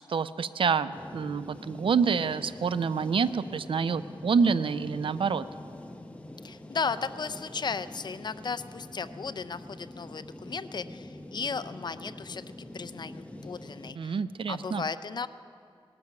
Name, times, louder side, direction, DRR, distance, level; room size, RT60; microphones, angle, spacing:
voice 1, 0.1-5.4 14.0-14.8, right 5 dB, 65° right, 14 dB, 0.5 m, -27 dB
sound 1, 0.9-13.9, left 1 dB, 15° left, 0.9 m, -45 dB
voice 2, 6.4-12.4 12.7-14.2 14.5-15.3, left 5 dB, 50° left, 12 dB, 0.5 m, -35 dB
19.0 x 13.0 x 5.9 m, 2.4 s
wide cardioid pair, 105°, 10 cm